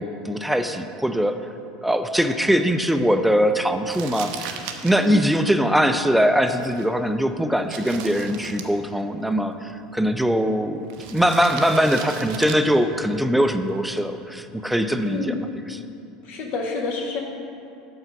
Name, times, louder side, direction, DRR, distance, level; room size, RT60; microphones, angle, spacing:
voice 1, 0.0-1.4 1.8-4.6 4.8-15.4 15.7-15.8, equal, ahead, 8 dB, 0.4 m, -21 dB
Crumpling crinkling, 3.9-14.0, right 7 dB, 65° right, 0.6 m, -40 dB
voice 2, 5.0-5.3 15.0-15.5 16.2-17.2, left 3 dB, 50° left, -1 dB, 0.8 m, -28 dB
5.6 x 4.6 x 5.9 m, 2.6 s
hypercardioid pair, 80°, 3 cm